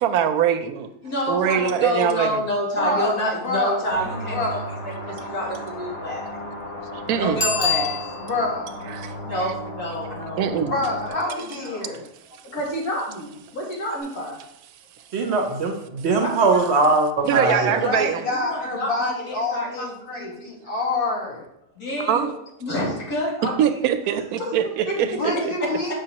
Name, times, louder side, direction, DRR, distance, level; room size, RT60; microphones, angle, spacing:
voice 1, 0.0-0.9 1.3-2.4 6.9-7.4 8.9-9.1 10.4-10.7 17.3-18.3 22.0-22.3 23.6-25.1 25.4-25.5, right 9 dB, 90° right, 10 dB, 1.1 m, -22 dB
voice 2, 1.0-4.6 4.8-6.4 7.1-8.0 9.2-10.8 11.1-11.8 12.4-14.5 16.2-16.7 17.5-17.9 18.3-20.5 21.8-22.3 22.6-23.8 24.4-24.5 24.9-25.0, equal, 85° left, -5 dB, 2.5 m, -29 dB
voice 3, 2.8-3.9 4.3-4.7 8.2-8.8 10.6-12.0 17.2-21.4 25.0-25.9, left 2 dB, 40° left, -2 dB, 1.6 m, -27 dB
After the bombing, 3.9-11.1, left 1 dB, 25° left, 1.1 m, -35 dB
Bicycle bell, 7.4-8.5 14.0-14.1, left 5 dB, 60° left, 1.9 m, -25 dB
voice 4, 15.1-18.0, right 3 dB, 60° right, 4 dB, 0.8 m, -21 dB
7.2 x 5.3 x 2.9 m, 0.80 s
omnidirectional pair, 1.5 m